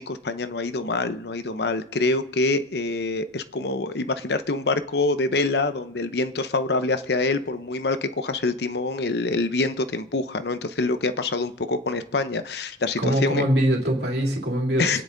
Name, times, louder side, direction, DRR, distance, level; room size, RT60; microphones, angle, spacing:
voice 1, 0.0-13.5 14.8-15.0, left 3 dB, 65° left, 10 dB, 0.8 m, -25 dB
voice 2, 13.0-15.0, equal, 65° right, 1 dB, 3.0 m, -23 dB
26.5 x 9.7 x 3.9 m, 0.71 s
head